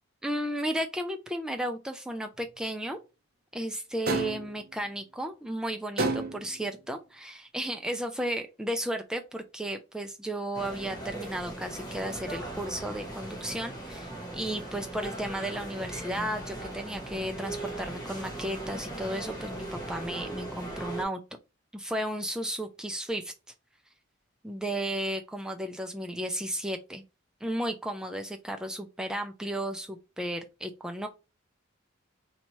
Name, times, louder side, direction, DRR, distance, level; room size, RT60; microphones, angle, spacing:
voice 1, 0.2-3.0 3.5-21.2 21.7-23.3 24.4-27.0 27.4-31.1, right 1 dB, 5° right, 0.3 m, -34 dB
sound 1, 4.1-4.6 6.0-6.6, right 2 dB, 45° right, 0.7 m, -29 dB
sound 2, 10.5-21.0, right 1 dB, 20° left, 1.1 m, -39 dB
4.4 x 2.8 x 3.0 m
head